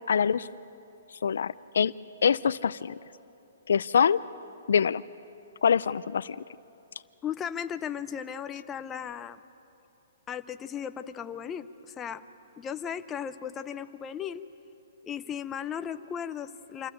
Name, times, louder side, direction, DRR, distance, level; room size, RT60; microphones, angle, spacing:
voice 1, 0.1-0.5 1.2-1.9 2.2-2.9 3.7-4.2 4.7-5.0 5.6-6.4, left 7 dB, 75° left, 17 dB, 0.4 m, -24 dB
voice 2, 7.2-9.4 10.3-12.2 12.6-14.4 15.1-16.9, left 8 dB, 15° left, 10 dB, 0.7 m, -36 dB
26.5 x 15.5 x 9.0 m, 2.8 s
hypercardioid pair, 145°, 0 cm